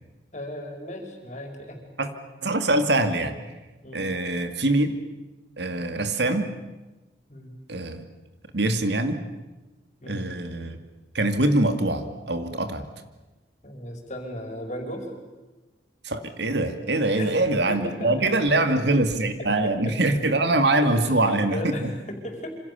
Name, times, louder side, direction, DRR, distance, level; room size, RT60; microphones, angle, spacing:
voice 1, 0.3-1.8 3.8-4.1 7.3-7.6 10.0-10.3 13.6-15.1 17.2-17.4 17.7-18.7 19.4-20.0 20.8-22.5, left 1 dB, 40° left, 4 dB, 5.3 m, -36 dB
voice 2, 2.4-3.4 3.9-4.9 5.6-6.5 7.7-8.0 8.5-9.2 10.1-10.8 11.1-12.8 16.0-21.9, right 2 dB, 70° right, 8 dB, 2.4 m, -23 dB
27.0 x 26.5 x 7.1 m, 1.1 s
head